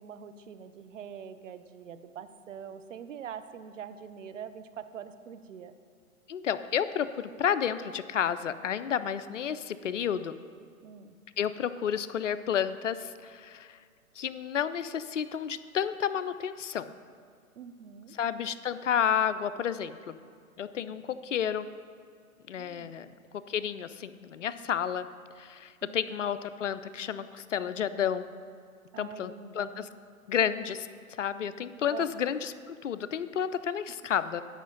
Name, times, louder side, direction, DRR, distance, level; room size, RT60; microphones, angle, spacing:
voice 1, 0.0-5.7 10.8-11.2 17.6-18.1 20.8-21.0 22.6-22.9 25.8-26.0 28.9-29.9 31.9-32.1, right 7 dB, 60° right, 10 dB, 0.7 m, -44 dB
voice 2, 6.3-10.4 11.4-13.8 14.2-16.9 18.1-20.2 20.6-21.7 22.5-25.1 25.4-28.3 29.0-29.9 30.3-34.4, left 8 dB, 60° left, 13 dB, 0.5 m, -31 dB
10.5 x 5.7 x 5.7 m, 2.2 s
figure-of-eight pair, 130°, 43 cm